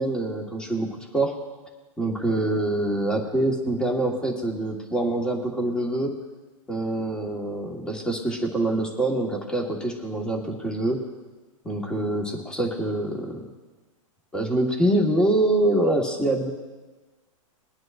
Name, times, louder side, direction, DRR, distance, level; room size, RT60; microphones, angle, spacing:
voice 1, 0.0-1.4 2.0-6.1 6.7-11.0 11.6-13.4 14.3-16.5, right 1 dB, 5° left, 0 dB, 1.5 m, -25 dB
22.5 x 9.5 x 2.6 m, 1.2 s
hypercardioid pair, 140°, 17 cm